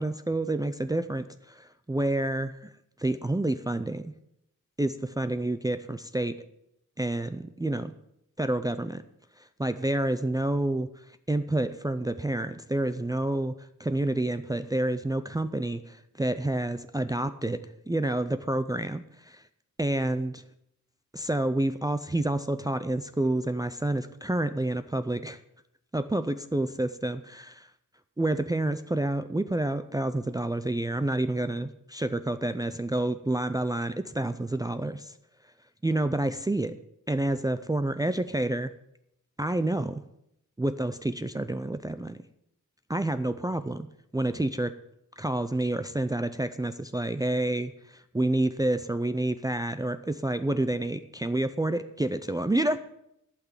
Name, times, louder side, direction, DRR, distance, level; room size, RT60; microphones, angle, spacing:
voice 1, 0.0-2.7 3.0-4.1 4.8-6.3 7.0-7.9 8.4-9.0 9.6-10.9 11.3-13.5 13.8-17.6 17.9-19.4 19.8-20.4 21.1-25.4 25.9-27.7 28.2-35.1 35.8-36.7 37.1-38.7 39.4-40.0 40.6-42.2 42.9-43.9 44.1-44.7 45.2-52.8, right 1 dB, 10° right, 10 dB, 0.4 m, -28 dB
11.5 x 6.0 x 8.8 m, 0.78 s
wide cardioid pair, 135°, 32 cm